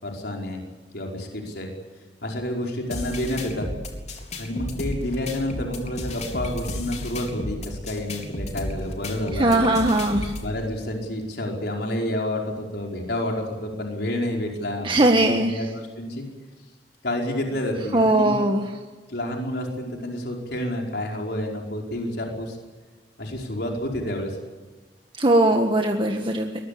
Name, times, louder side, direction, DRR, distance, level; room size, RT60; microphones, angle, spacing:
voice 1, 0.0-0.6 0.9-1.7 2.2-3.7 4.4-9.8 10.4-16.3 17.0-18.4 19.1-22.6 23.2-24.4, left 1 dB, 65° left, 1 dB, 5.1 m, -29 dB
sound 1, 2.9-10.5, left 1 dB, 40° left, 3.9 m, -33 dB
voice 2, 9.3-10.3 14.8-15.6 17.9-18.6 25.2-26.6, right 1 dB, 30° right, 3 dB, 1.6 m, -20 dB
23.0 x 21.0 x 8.6 m, 1.3 s
head